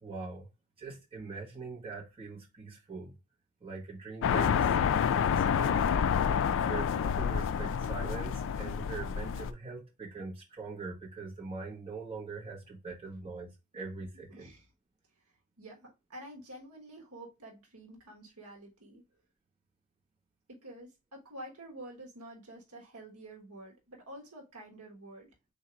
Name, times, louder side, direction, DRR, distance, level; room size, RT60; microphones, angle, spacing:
voice 1, 0.0-0.5 0.8-3.1 3.6-6.1 6.6-14.5, right 4 dB, 25° right, 1.4 m, -42 dB
sound 1, 4.2-9.5, left 7 dB, 60° left, 0.3 m, -28 dB
voice 2, 14.3-14.7 15.6-19.0 20.5-25.3, right 1 dB, 75° right, 1.3 m, -49 dB
3.7 x 2.7 x 4.4 m
head